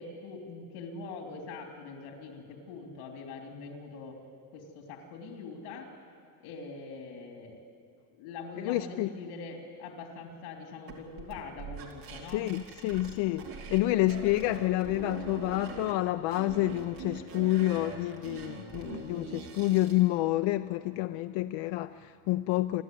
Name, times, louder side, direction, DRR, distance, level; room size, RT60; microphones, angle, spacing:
voice 1, 0.0-4.2 4.5-5.9 6.4-7.6 8.1-12.4, left 4 dB, 90° left, 3.4 m, -43 dB
voice 2, 8.6-9.1 12.3-22.8, left 16 dB, 65° left, 0.7 m, -29 dB
sound 1, 10.9-13.8 14.1-15.9 16.3-20.0, right 5 dB, 90° right, 3.4 m, -42 dB
27.5 x 12.0 x 9.3 m
cardioid pair, 115°, 49 cm